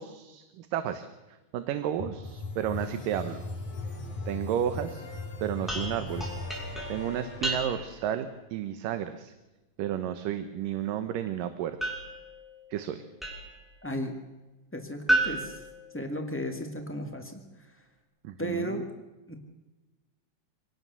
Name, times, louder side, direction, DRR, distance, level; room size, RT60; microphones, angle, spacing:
voice 1, 0.0-3.5 4.3-5.1 5.4-6.3 6.9-9.3 9.8-11.9 12.7-13.0 18.2-18.8, right 10 dB, 75° right, 10 dB, 2.6 m, -32 dB
sound 1, 2.0-7.6, left 2 dB, 60° left, 5.3 m, -38 dB
sound 2, 5.7-8.1 11.8-13.7 15.1-16.5, right 1 dB, ahead, 5.8 m, -33 dB
voice 2, 13.8-14.2 14.7-15.6 15.9-17.8 18.4-18.9 19.3-19.4, equal, 20° left, 3 dB, 0.3 m, -35 dB
25.5 x 18.5 x 6.9 m, 1.1 s
omnidirectional pair, 4.1 m